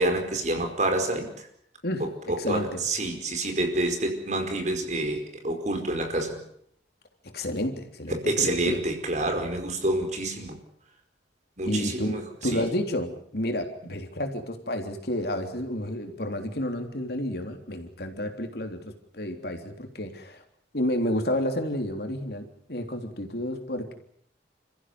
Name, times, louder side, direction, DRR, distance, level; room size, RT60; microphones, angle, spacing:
voice 1, 0.0-1.5 2.0-6.4 8.1-10.6 11.6-12.2 12.5-12.6, right 1 dB, 40° right, 5 dB, 5.1 m, -28 dB
voice 2, 1.8-2.8 7.2-8.8 11.7-20.4 20.7-23.9, left 1 dB, 60° left, 5 dB, 3.5 m, -31 dB
29.0 x 15.0 x 9.7 m, 0.68 s
head